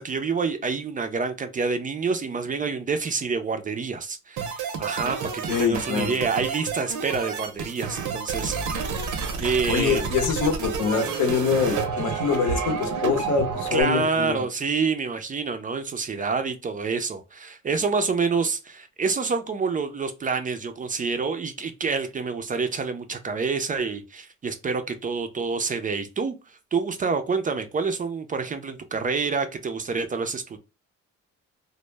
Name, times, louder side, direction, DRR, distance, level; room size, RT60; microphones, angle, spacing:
voice 1, 0.0-8.8 9.4-10.1 13.7-26.3 26.7-30.6, right 4 dB, 30° right, 0.3 m, -27 dB
sound 1, 4.4-13.8, right 5 dB, 75° right, 0.6 m, -30 dB
voice 2, 5.5-6.1 9.7-14.4, left 6 dB, 75° left, 0.7 m, -24 dB
2.0 x 2.0 x 3.1 m
cardioid pair, 90°, 30 cm